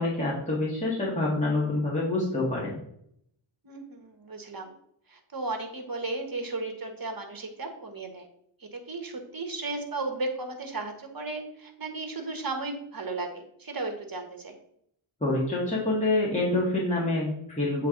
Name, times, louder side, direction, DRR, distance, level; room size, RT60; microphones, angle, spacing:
voice 1, 0.0-2.7 15.2-17.9, left 2 dB, 15° left, -7 dB, 1.8 m, -26 dB
voice 2, 3.6-4.7 5.1-8.3 8.6-14.6, right 3 dB, 45° right, 4 dB, 1.2 m, -35 dB
7.6 x 3.4 x 3.8 m, 0.70 s
wide cardioid pair, 60°, 49 cm